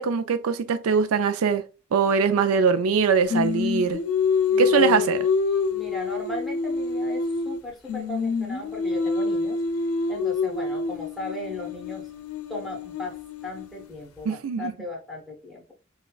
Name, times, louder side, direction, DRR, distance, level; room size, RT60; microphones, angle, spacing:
voice 1, 0.0-1.6 1.9-4.0 4.6-5.2 14.2-14.7, right 5 dB, 90° right, 0.4 m, -22 dB
Singing, 3.3-7.6 7.9-13.9, left 4 dB, 85° left, 0.6 m, -26 dB
voice 2, 4.5-5.1 5.7-9.6 10.1-12.1 12.5-15.7, left 1 dB, ahead, 1.0 m, -37 dB
5.2 x 2.3 x 2.3 m
head